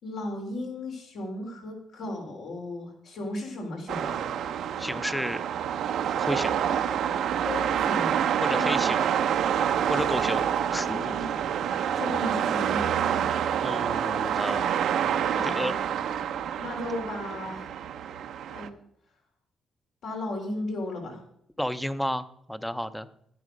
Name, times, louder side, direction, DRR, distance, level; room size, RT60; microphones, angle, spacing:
voice 1, 0.0-4.2 6.5-6.6 7.4-8.2 8.5-8.9 10.8-13.3 13.9-14.0 15.3-15.7 16.6-17.7 18.5-18.7 20.0-21.2, left 1 dB, 70° left, 0 dB, 3.5 m, -35 dB
sound 1, 3.9-18.7, right 9 dB, 75° right, 0.7 m, -27 dB
voice 2, 4.8-5.5 6.1-6.5 8.4-9.0 9.9-10.4 10.7-11.2 13.6-14.7 15.4-15.9 21.6-23.1, equal, 5° left, 14 dB, 0.7 m, -31 dB
11.0 x 9.7 x 5.3 m, 0.71 s
cardioid pair, 90°, 0 cm